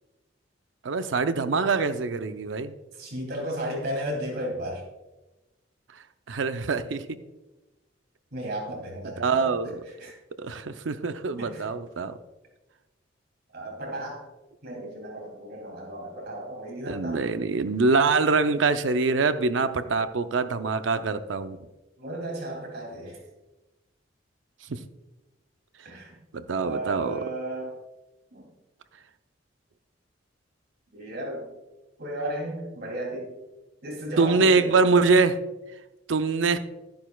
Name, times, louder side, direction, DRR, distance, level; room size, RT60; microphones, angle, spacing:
voice 1, 0.8-2.7 6.3-7.2 9.2-9.8 10.4-12.2 16.9-21.6 24.7-24.8 26.5-27.2 34.2-35.4 36.1-36.6, right 4 dB, 80° right, 10 dB, 0.6 m, -24 dB
voice 2, 2.9-4.8 8.3-9.5 10.0-10.1 11.4-11.7 13.5-14.2 14.6-17.2 22.0-23.2 25.8-26.2 26.6-27.7 28.3-28.5 30.9-31.5 32.0-33.3 33.8-34.8, right 1 dB, 60° right, -1 dB, 3.0 m, -34 dB
12.0 x 10.5 x 2.3 m, 1.1 s
head